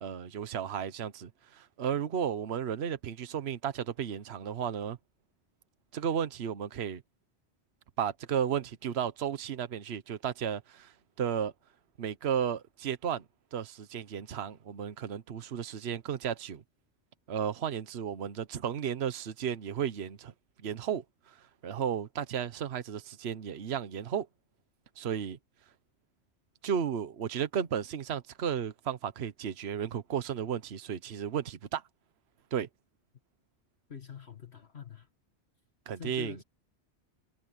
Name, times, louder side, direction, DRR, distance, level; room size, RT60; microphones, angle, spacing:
voice 1, 0.0-5.0 5.9-7.0 8.0-10.9 11.2-11.5 12.0-13.2 13.5-16.6 17.3-20.3 20.6-21.4 21.6-24.3 25.0-25.4 26.6-31.8 32.5-32.7 35.9-36.4, right 8 dB, 65° right, 1.2 m, -34 dB
voice 2, 33.9-35.1 36.0-36.4, left 7 dB, 65° left, 2.1 m, -44 dB
omnidirectional pair, 1.2 m